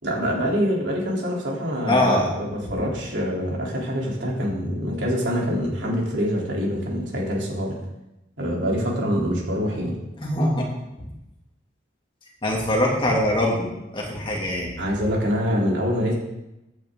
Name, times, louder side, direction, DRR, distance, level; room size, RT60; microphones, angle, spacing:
voice 1, 0.0-7.8 8.4-9.9 14.8-16.1, equal, 80° right, -3 dB, 3.7 m, -25 dB
voice 2, 1.9-2.3 10.2-10.7 11.0-11.1 12.4-14.7, left 1 dB, 30° left, -2 dB, 2.6 m, -23 dB
14.5 x 9.1 x 3.9 m, 0.93 s
head